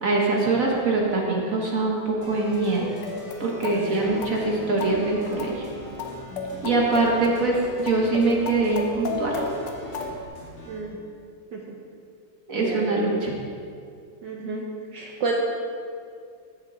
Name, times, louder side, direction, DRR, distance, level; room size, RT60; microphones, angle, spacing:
voice 1, 0.0-2.9 3.4-5.7 6.6-9.4 12.5-13.3, right 3 dB, 45° right, -2 dB, 1.5 m, -23 dB
sound 1, 2.2-10.8, equal, 80° left, 3.1 m, -41 dB
sound 2, 2.8-10.2, left 4 dB, 65° left, 1.4 m, -35 dB
voice 2, 10.7-11.0 11.5-11.6 12.6-13.0 14.2-14.7 14.9-15.3, right 4 dB, 65° right, -1 dB, 1.3 m, -31 dB
14.0 x 6.7 x 3.9 m, 2.3 s
omnidirectional pair, 2.3 m